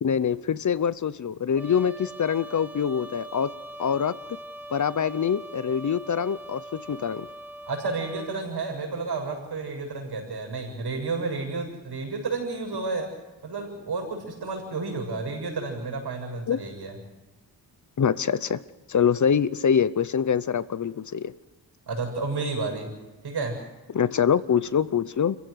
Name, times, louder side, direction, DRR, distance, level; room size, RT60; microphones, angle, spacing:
voice 1, 0.0-3.5 3.8-4.2 4.7-7.3 16.5-16.6 18.0-18.6 18.9-21.3 23.9-25.4, left 7 dB, 40° left, 17 dB, 0.7 m, -24 dB
Trumpet, 1.6-8.4, right 1 dB, 5° right, 2.3 m, -42 dB
voice 2, 7.7-13.1 13.4-16.9 21.9-22.9 23.2-23.6, right 3 dB, 60° right, 2 dB, 6.7 m, -31 dB
29.5 x 15.5 x 6.5 m, 1.1 s
wide cardioid pair, 170°, 44 cm